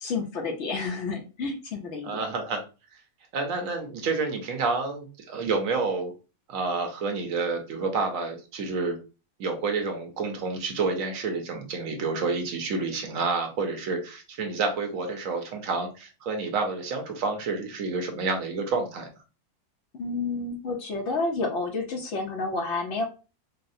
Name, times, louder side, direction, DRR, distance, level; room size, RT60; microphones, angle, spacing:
voice 1, 0.0-2.2 19.9-23.1, left 3 dB, 60° left, 2 dB, 0.9 m, -30 dB
voice 2, 2.0-2.6 3.3-6.1 6.5-9.0 9.4-19.1, right 4 dB, 75° right, 4 dB, 1.1 m, -29 dB
4.0 x 2.0 x 2.6 m, 0.32 s
omnidirectional pair, 1.5 m